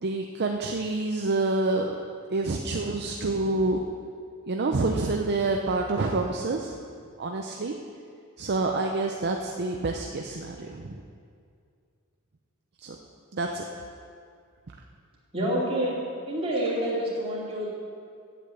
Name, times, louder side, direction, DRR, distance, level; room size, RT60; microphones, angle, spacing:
voice 1, 0.0-3.8 4.5-6.8 7.2-7.7 8.4-11.0 12.8-13.0 13.3-13.6, right 2 dB, 50° right, 2 dB, 0.6 m, -27 dB
voice 2, 15.3-16.0 16.3-17.7, right 1 dB, 25° right, -6 dB, 2.9 m, -27 dB
8.9 x 8.1 x 8.3 m, 2.3 s
head